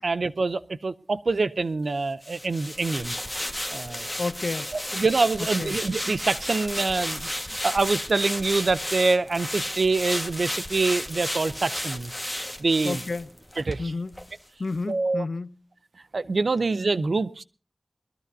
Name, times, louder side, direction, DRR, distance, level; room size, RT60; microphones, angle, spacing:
voice 1, 0.0-3.2 3.7-4.1 4.7-12.1 12.6-13.0 13.6-13.8 14.9-15.2 16.1-17.4, right 3 dB, 90° right, 0.6 m, -25 dB
sound 1, 2.2-13.8 14.1-14.3, left 1 dB, 10° left, 1.5 m, -33 dB
voice 2, 4.2-4.7 5.4-5.8 12.8-13.3 13.8-14.3 14.6-15.6, left 3 dB, 80° left, 0.5 m, -31 dB
21.5 x 14.0 x 2.7 m
wide cardioid pair, 55°, 0 cm